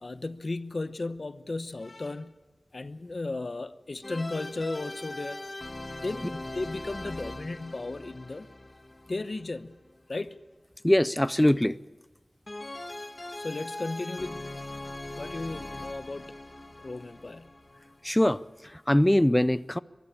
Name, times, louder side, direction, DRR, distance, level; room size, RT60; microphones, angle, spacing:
voice 1, 0.0-2.3 2.7-5.4 6.0-8.5 9.1-9.8 10.1-10.4 13.4-14.5 15.2-16.3 16.8-17.5, left 2 dB, 60° left, 0.9 m, -35 dB
sound 1, 4.0-10.0 12.5-18.2, left 2 dB, 35° left, 1.4 m, -41 dB
voice 2, 10.8-11.8 18.0-19.8, left 1 dB, 15° left, 0.5 m, -23 dB
23.0 x 14.5 x 8.6 m
wide cardioid pair, 65°, 0 cm